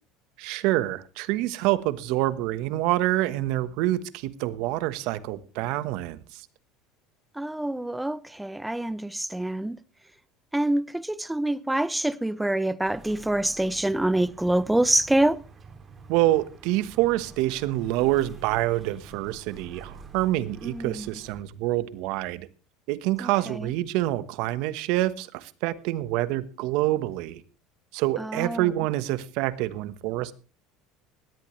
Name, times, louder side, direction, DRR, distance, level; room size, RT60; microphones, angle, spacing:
voice 1, 0.4-6.5 16.1-22.5 22.9-27.4 27.9-30.3, right 16 dB, 70° right, 1.2 m, -26 dB
voice 2, 7.4-9.8 10.5-15.4 20.6-21.1 23.2-23.7 28.2-28.7, right 1 dB, 5° right, 0.7 m, -26 dB
sound 1, 12.8-21.4, right 4 dB, 30° right, 2.6 m, -48 dB
18.5 x 13.5 x 3.3 m
supercardioid pair, 105°, 0 cm